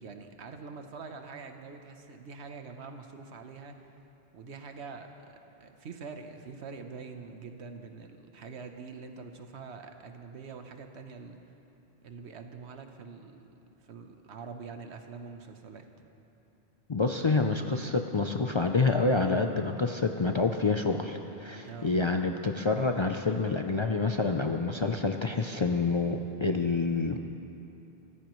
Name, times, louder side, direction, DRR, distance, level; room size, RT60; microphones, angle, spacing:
voice 1, 0.0-3.9 4.3-11.4 12.0-13.5 13.8-15.9 21.6-22.0, right 5 dB, 80° right, 6 dB, 1.2 m, -45 dB
voice 2, 16.9-27.2, left 3 dB, 40° left, 4 dB, 0.4 m, -27 dB
25.0 x 14.0 x 3.1 m, 2.9 s
omnidirectional pair, 1.1 m